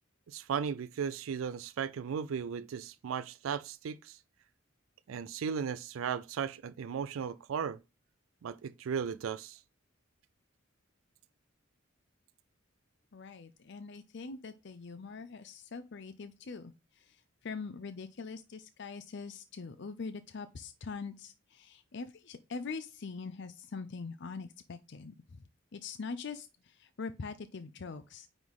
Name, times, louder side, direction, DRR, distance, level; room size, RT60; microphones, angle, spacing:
voice 1, 0.3-4.2 5.1-7.8 8.4-9.6, right 7 dB, 80° right, 0.4 m, -36 dB
voice 2, 13.1-25.4 25.7-28.3, left 4 dB, 60° left, 0.5 m, -43 dB
9.4 x 4.0 x 3.6 m
head